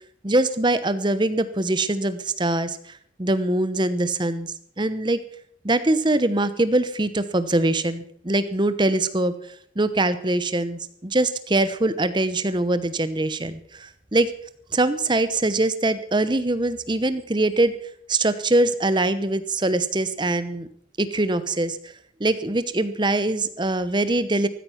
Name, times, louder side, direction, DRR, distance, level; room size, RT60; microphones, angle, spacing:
voice 1, 0.2-5.2 5.6-9.3 9.8-14.3 14.7-17.8 18.1-20.7 21.0-21.8 22.2-24.5, right 2 dB, 25° right, 13 dB, 0.9 m, -23 dB
14.5 x 14.0 x 5.8 m, 0.64 s
head